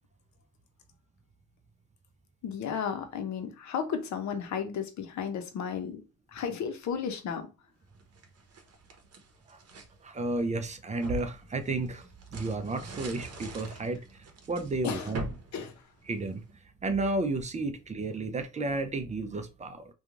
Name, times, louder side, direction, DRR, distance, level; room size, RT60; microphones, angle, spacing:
voice 1, 2.4-6.0 6.3-7.5 14.8-15.1 15.5-15.7, left 7 dB, 70° left, 0.7 m, -33 dB
sound 1, 8.0-9.9 10.4-16.5, right 1 dB, 55° right, 0.8 m, -43 dB
voice 2, 10.0-15.3 16.1-16.4 16.8-19.9, right 2 dB, 25° right, 0.5 m, -32 dB
2.9 x 2.3 x 2.4 m
cardioid pair, 90°, 30 cm